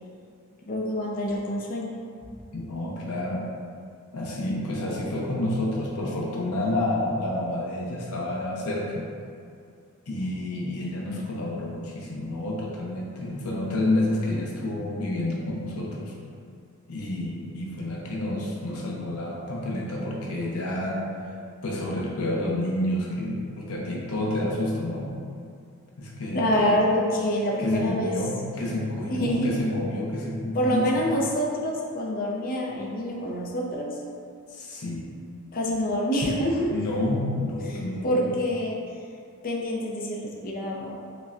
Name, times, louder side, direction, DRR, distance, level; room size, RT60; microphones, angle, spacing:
voice 1, 0.7-1.9 26.3-28.2 29.1-29.6 30.5-33.9 35.5-36.8 37.7-38.8 39.4-41.0, equal, 40° left, -2 dB, 0.5 m, -26 dB
voice 2, 2.5-3.5 4.1-9.0 10.1-16.1 16.9-21.0 21.6-25.1 26.0-26.8 27.6-30.9 34.5-35.1 36.7-38.3, left 1 dB, 85° left, -3 dB, 0.7 m, -29 dB
5.2 x 2.2 x 2.4 m, 2.4 s
head